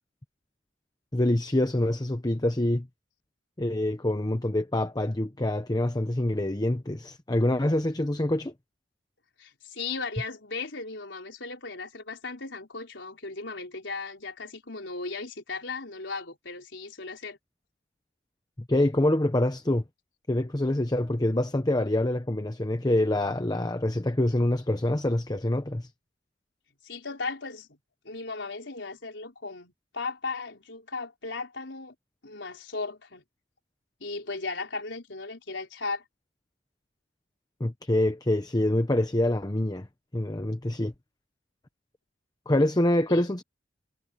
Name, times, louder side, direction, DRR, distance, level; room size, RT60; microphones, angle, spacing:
voice 1, 1.1-2.9 3.6-8.5 18.6-19.8 20.3-25.9 37.6-39.9 40.1-40.9 42.5-43.4, left 1 dB, 20° left, 1.0 m, -26 dB
voice 2, 9.4-17.4 26.8-27.8 28.0-31.9 32.2-33.2 34.0-36.0 43.1-43.2, left 3 dB, 85° left, 4.2 m, -36 dB
head